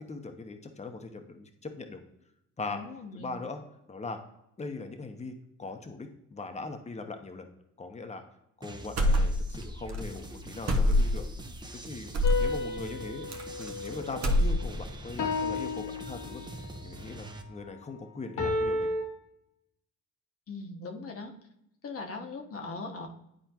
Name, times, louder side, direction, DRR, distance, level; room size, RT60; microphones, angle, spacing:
voice 1, 0.0-2.0 2.6-2.8 3.1-3.6 3.9-4.2 4.6-5.3 5.6-7.5 7.8-8.2 8.6-11.3 11.8-12.1 12.4-13.3 13.6-16.4 16.8-18.9, left 3 dB, 20° left, 6 dB, 1.0 m, -40 dB
voice 2, 2.7-3.3 20.5-21.3 21.8-23.1, left 3 dB, 50° left, 3 dB, 1.3 m, -40 dB
sound 1, 8.6-17.4, right 1 dB, 15° right, 0.8 m, -44 dB
sound 2, 9.0-9.6 9.9-10.0 10.7-11.3 12.1-12.5 13.3-13.9 14.1-14.9, left 1 dB, 60° right, 1.0 m, -24 dB
sound 3, 12.2-14.6 15.2-16.7 18.4-19.0, left 3 dB, 85° left, 1.6 m, -33 dB
10.5 x 4.3 x 3.0 m, 0.81 s
cardioid pair, 90°, 30 cm